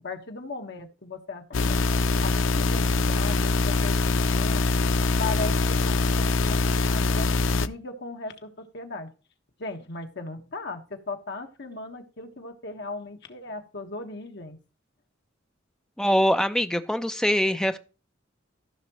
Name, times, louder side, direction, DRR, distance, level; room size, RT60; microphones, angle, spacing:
voice 1, 0.0-1.8 2.2-4.8 5.2-6.6 6.9-9.1 9.6-14.6, left 3 dB, 65° left, 5 dB, 1.5 m, -37 dB
sound 1, 1.5-7.7, left 3 dB, 90° left, 0.5 m, -23 dB
voice 2, 16.0-17.8, equal, 5° left, 9 dB, 0.6 m, -23 dB
15.0 x 5.9 x 3.1 m, 0.34 s
head